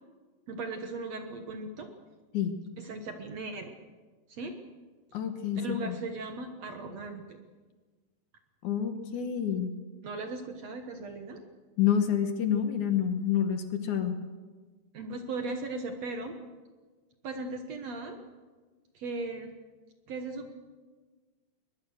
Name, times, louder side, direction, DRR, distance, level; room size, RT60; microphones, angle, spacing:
voice 1, 0.5-1.9 2.8-3.7 4.3-4.6 5.6-7.4 10.0-11.4 14.9-16.4 17.2-18.2 18.9-19.5 20.1-20.5, right 3 dB, 60° right, 5 dB, 2.0 m, -37 dB
voice 2, 5.1-6.0 8.6-9.7 11.8-14.2, left 9 dB, 65° left, 7 dB, 2.4 m, -28 dB
22.0 x 20.5 x 6.5 m, 1.4 s
omnidirectional pair, 4.2 m